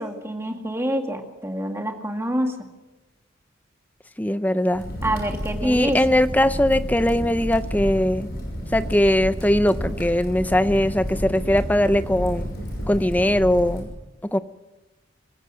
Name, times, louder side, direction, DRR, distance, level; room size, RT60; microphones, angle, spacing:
voice 1, 0.0-2.6 5.0-6.0, right 1 dB, 15° right, 4 dB, 2.0 m, -27 dB
voice 2, 4.2-4.8 5.6-8.3 8.7-12.5 12.9-13.9 14.3-14.4, left 1 dB, 10° left, 13 dB, 0.6 m, -20 dB
Crackle, 4.7-13.8, equal, 50° left, 6.2 m, -31 dB
26.5 x 15.5 x 6.4 m, 1.1 s
head